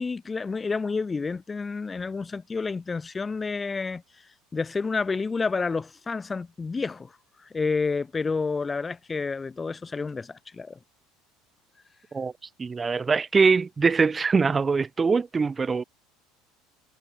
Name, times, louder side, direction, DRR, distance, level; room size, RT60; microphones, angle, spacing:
voice 1, 0.0-4.0 4.5-7.1 7.4-10.8, left 4 dB, 15° left, 6.5 m, -29 dB
voice 2, 12.6-15.8, right 5 dB, 15° right, 4.5 m, -23 dB
cardioid pair, 155°, 0 cm